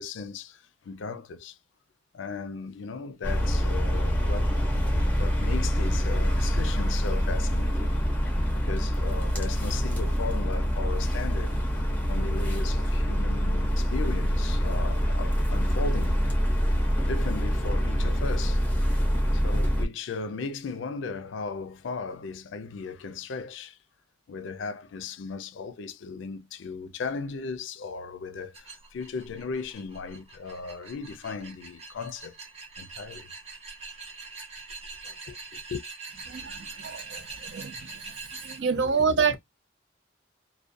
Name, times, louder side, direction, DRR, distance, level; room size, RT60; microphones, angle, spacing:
voice 1, 0.0-1.6 2.1-4.6 5.2-8.3 8.5-11.5 12.1-16.2 17.0-18.6 19.3-23.8 24.3-32.4 32.8-33.3 35.0-35.8 38.7-39.4, left 4 dB, 75° left, 0.4 m, -37 dB
sound 1, 3.2-19.9, equal, 10° left, 0.6 m, -25 dB
sound 2, 28.5-38.6, right 4 dB, 35° right, 0.8 m, -43 dB
voice 2, 36.3-37.7 38.5-39.4, right 5 dB, 65° right, 0.5 m, -27 dB
2.3 x 2.1 x 2.4 m
head